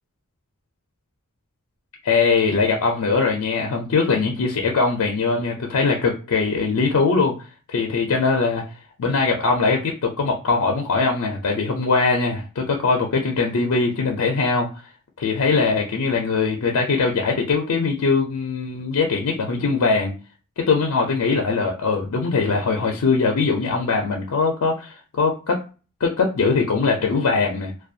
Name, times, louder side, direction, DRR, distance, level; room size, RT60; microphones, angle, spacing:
voice 1, 2.0-7.3 7.7-8.6 9.0-14.7 15.2-20.1 20.6-25.6 26.0-27.7, left 4 dB, 80° left, 2 dB, 0.5 m, -21 dB
2.4 x 2.2 x 2.6 m, 0.34 s
head